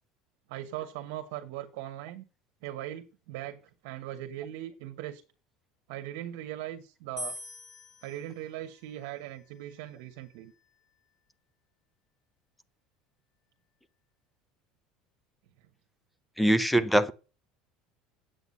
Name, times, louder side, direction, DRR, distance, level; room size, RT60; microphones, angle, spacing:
voice 1, 0.5-2.2 2.6-5.2 5.9-7.4 8.0-10.5, right 13 dB, 80° right, 1.2 m, -39 dB
sound 1, 7.2-10.4, left 2 dB, 30° left, 3.8 m, -45 dB
voice 2, 16.4-17.1, right 1 dB, 5° left, 0.6 m, -23 dB
8.1 x 8.0 x 5.5 m
cardioid pair, 135°, 0 cm